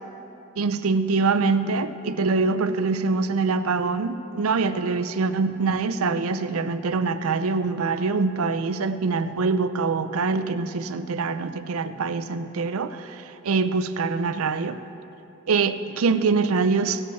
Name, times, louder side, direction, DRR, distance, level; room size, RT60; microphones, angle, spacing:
voice 1, 0.6-14.8 15.5-17.0, right 4 dB, 85° right, 11 dB, 0.5 m, -24 dB
16.0 x 5.4 x 7.9 m, 2.8 s
head